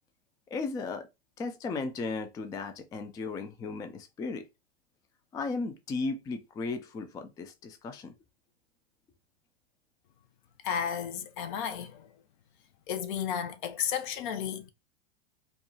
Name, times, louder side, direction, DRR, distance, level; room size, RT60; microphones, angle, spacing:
voice 1, 0.5-1.1 1.4-4.4 5.3-8.1, left 3 dB, 10° left, 0.3 m, -35 dB
voice 2, 10.6-12.1 12.9-14.7, left 8 dB, 55° left, 0.7 m, -33 dB
4.5 x 2.2 x 2.7 m
hypercardioid pair, 105°, 30 cm